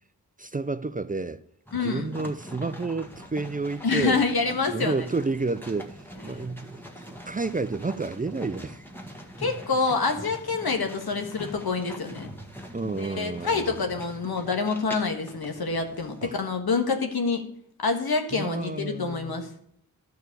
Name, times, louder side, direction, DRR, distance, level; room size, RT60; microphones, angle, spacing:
voice 1, 0.4-1.4 1.7-4.2 4.7-6.8 7.1-8.9 12.7-13.8 16.2-16.3 18.3-19.4, right 3 dB, 25° right, 0.4 m, -30 dB
voice 2, 1.7-2.1 3.8-4.9 9.4-12.3 13.0-17.4 17.8-19.5, left 4 dB, 80° left, 1.5 m, -27 dB
sound 1, 1.7-16.2, equal, 5° left, 1.6 m, -43 dB
12.0 x 4.7 x 8.2 m
wide cardioid pair, 60°, 37 cm